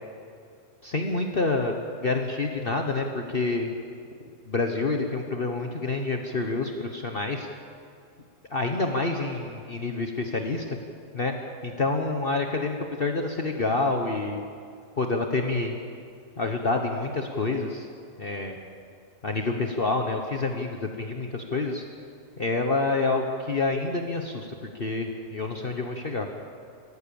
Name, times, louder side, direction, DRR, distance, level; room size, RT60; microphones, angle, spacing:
voice 1, 0.8-3.7 4.5-7.5 8.5-10.6 11.1-11.3 11.6-14.4 15.0-15.8 16.4-17.9 18.2-18.6 19.2-21.8 22.4-24.5 24.8-26.3, left 3 dB, 40° left, 3 dB, 1.3 m, -27 dB
26.5 x 14.5 x 7.1 m, 2.3 s
omnidirectional pair, 1.6 m